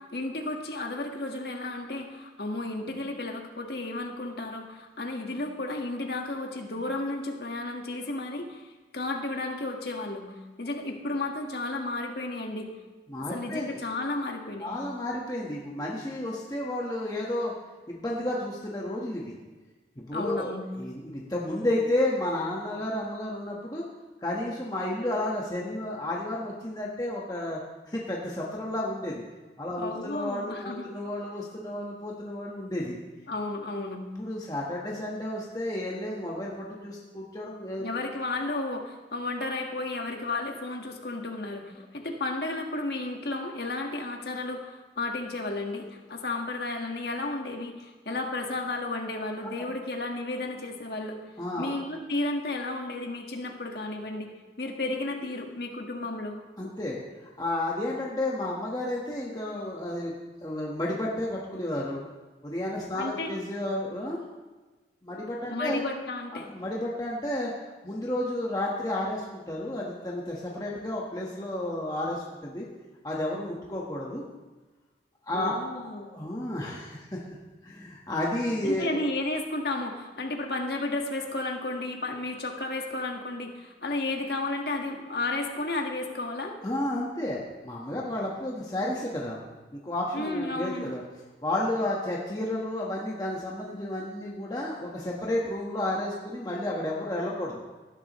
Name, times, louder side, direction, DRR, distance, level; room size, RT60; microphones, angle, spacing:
voice 1, 0.1-12.7 13.3-14.7 20.1-20.7 29.7-30.9 33.3-34.0 37.8-51.2 51.6-54.3 54.6-56.4 62.9-63.3 65.5-66.5 75.3-76.1 78.6-86.6 90.1-90.9, left 2 dB, 60° left, 2 dB, 1.6 m, -33 dB
voice 2, 13.1-13.8 14.6-17.5 17.9-19.4 20.0-23.9 24.2-27.6 27.9-29.2 29.6-33.0 34.2-38.1 48.1-48.2 49.6-49.7 51.4-51.7 56.6-57.0 57.4-60.2 60.4-62.0 62.4-64.3 65.0-65.8 66.3-67.5 67.8-72.7 73.0-74.2 75.3-77.2 77.6-79.0 86.6-89.4 89.7-91.0 91.4-97.6, left 1 dB, 20° left, -4 dB, 1.3 m, -32 dB
18.5 x 11.0 x 3.1 m, 1.2 s
head